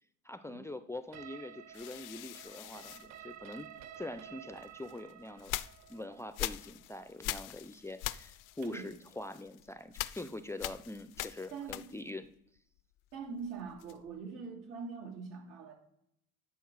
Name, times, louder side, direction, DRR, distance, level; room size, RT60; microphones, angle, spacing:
voice 1, 0.2-3.7 4.0-5.6 5.9-12.3, left 1 dB, 10° left, 10 dB, 0.4 m, -44 dB
sound 1, 1.1-9.0, right 10 dB, 60° right, 0.6 m, -52 dB
sound 2, 1.7-4.0 4.6-12.3 12.6-14.2, left 17 dB, 85° left, 0.5 m, -43 dB
voice 2, 11.5-11.8 13.1-15.7, right 5 dB, 80° right, -1 dB, 2.9 m, -43 dB
9.2 x 6.3 x 4.7 m, 0.74 s
cardioid pair, 115°, 31 cm